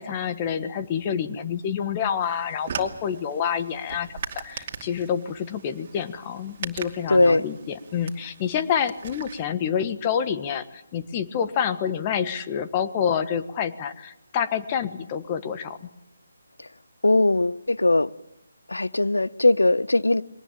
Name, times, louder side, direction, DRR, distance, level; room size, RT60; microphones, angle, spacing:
voice 1, 0.0-7.6 7.9-15.9, left 8 dB, 25° left, 1.4 m, -28 dB
sound 1, 2.2-9.4, right 6 dB, 35° right, 2.5 m, -40 dB
voice 2, 7.1-7.4 16.6-16.7 17.0-18.1 18.7-20.2, left 2 dB, 85° left, 0.8 m, -20 dB
23.0 x 19.0 x 8.8 m
figure-of-eight pair, 155°, 0 cm